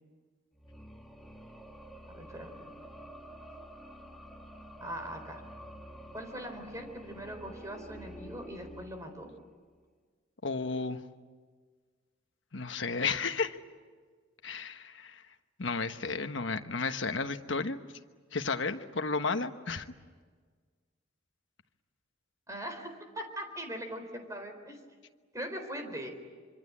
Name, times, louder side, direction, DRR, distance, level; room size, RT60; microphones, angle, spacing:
sound 1, 0.5-9.6, equal, ahead, 2.2 m, -49 dB
voice 1, 2.1-2.5 4.8-5.4 6.1-9.3 22.5-24.8 25.3-26.1, equal, 15° right, 5 dB, 4.1 m, -41 dB
voice 2, 10.4-11.0 12.5-13.6 14.4-15.2 15.6-17.8 18.3-19.9, left 4 dB, 70° left, 8 dB, 1.2 m, -33 dB
26.0 x 25.0 x 8.7 m, 1.5 s
head